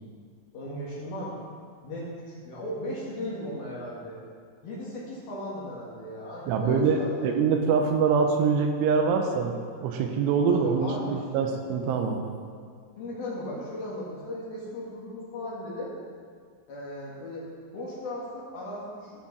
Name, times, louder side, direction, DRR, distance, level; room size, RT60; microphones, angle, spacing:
voice 1, 0.5-1.4 1.8-4.2 4.6-7.3 10.5-11.5 13.0-16.0 16.7-17.5 17.7-19.3, left 1 dB, 60° left, -6 dB, 3.2 m, -37 dB
voice 2, 6.5-12.2, right 5 dB, 85° right, 4 dB, 3.1 m, -24 dB
15.5 x 5.2 x 5.3 m, 2.1 s
omnidirectional pair, 5.7 m